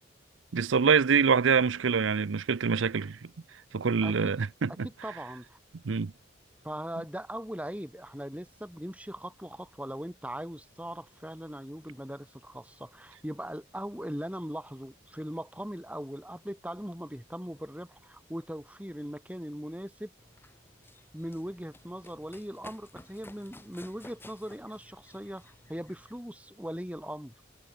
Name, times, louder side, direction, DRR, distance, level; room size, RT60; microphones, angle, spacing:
voice 1, 0.5-3.2 3.7-4.9 5.8-6.1, right 5 dB, 80° right, 0.6 m, -25 dB
voice 2, 4.0-4.3 5.0-5.6 6.6-20.1 21.1-27.3, equal, 5° right, 4.2 m, -40 dB
Run, 20.2-26.2, left 1 dB, 10° left, 5.7 m, -54 dB
head